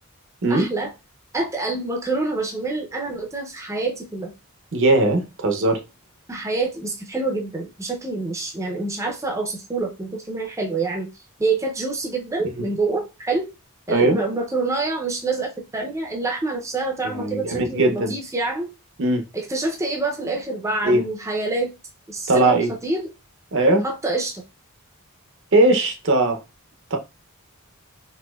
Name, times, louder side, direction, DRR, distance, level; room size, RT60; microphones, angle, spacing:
voice 1, 0.5-0.9 1.3-4.3 6.3-11.1 11.4-13.5 13.9-18.7 19.3-21.7 22.1-23.1 23.8-24.4, right 3 dB, 15° right, 0.5 m, -26 dB
voice 2, 4.7-5.8 12.6-12.7 13.9-14.2 17.1-18.1 19.0-19.2 20.8-21.0 22.3-22.7 23.5-23.8 25.5-26.4 26.9-27.0, right 2 dB, 60° right, 0.7 m, -19 dB
4.2 x 2.6 x 2.3 m
head